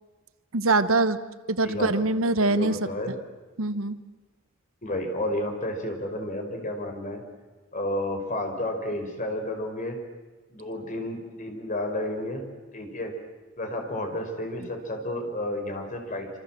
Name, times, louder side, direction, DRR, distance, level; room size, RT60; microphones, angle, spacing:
voice 1, 0.5-1.2 1.5-2.8 3.6-4.0, right 2 dB, 75° right, 13 dB, 1.2 m, -23 dB
voice 2, 2.4-3.1 4.8-7.2 7.7-10.0 10.5-12.5 12.7-13.2 13.6-16.3, left 1 dB, 40° left, 4 dB, 5.3 m, -31 dB
27.0 x 27.0 x 7.7 m, 1.2 s
head